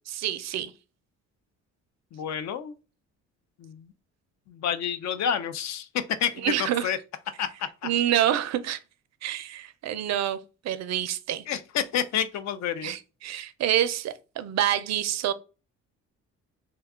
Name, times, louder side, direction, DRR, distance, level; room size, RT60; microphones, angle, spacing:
voice 1, 0.1-0.7 6.4-6.9 7.8-8.8 9.2-10.4 10.6-11.4 12.8-15.3, right 11 dB, 60° right, 0.4 m, -27 dB
voice 2, 2.1-2.7 3.6-3.9 4.5-5.9 6.2-7.0 7.4-7.9 11.5-12.9, left 8 dB, 65° left, 0.5 m, -29 dB
2.7 x 2.2 x 3.5 m
cardioid pair, 90°, 30 cm